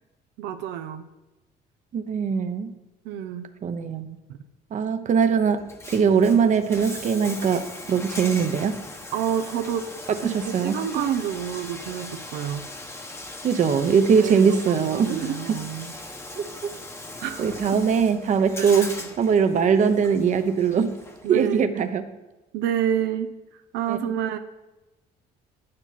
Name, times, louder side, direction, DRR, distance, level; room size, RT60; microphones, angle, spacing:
voice 1, 0.4-1.0 3.0-3.5 9.1-9.9 10.2-12.7 14.2-15.9 17.2-17.6 18.6-19.1 21.2-21.8 22.5-23.3 23.7-24.4, right 9 dB, 85° right, 7 dB, 0.7 m, -28 dB
voice 2, 1.9-2.7 3.6-4.2 4.7-5.6 5.9-7.6 7.9-8.7 10.2-10.8 13.4-15.6 16.4-16.5 17.4-18.9 19.2-20.9 21.3-22.0 23.9-24.2, right 6 dB, 45° right, 9 dB, 0.9 m, -21 dB
Bathtub (filling or washing), 5.6-21.5, left 2 dB, 15° left, 1.0 m, -39 dB
11.5 x 9.8 x 4.2 m, 1.0 s
cardioid pair, 110°, 17 cm